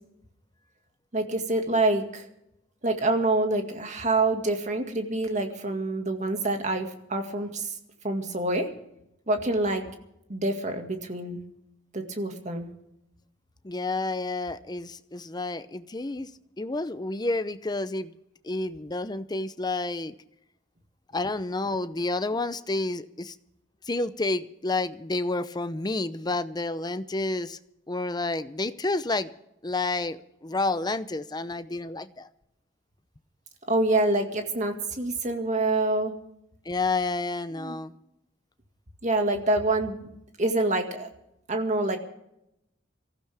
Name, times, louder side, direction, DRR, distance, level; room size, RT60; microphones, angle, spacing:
voice 1, 1.1-2.3 2.8-7.8 8.0-8.7 9.3-9.8 10.3-11.4 11.9-12.7 33.7-36.1 37.5-37.8 39.0-40.1 40.4-41.1 41.5-42.0, right 2 dB, 40° right, 5 dB, 2.0 m, -26 dB
voice 2, 13.6-16.3 16.6-18.1 18.4-20.1 21.1-23.3 23.9-27.6 27.9-29.3 29.6-32.3 36.7-37.9, left 2 dB, 20° left, 12 dB, 0.7 m, -30 dB
24.0 x 15.0 x 3.5 m, 0.81 s
head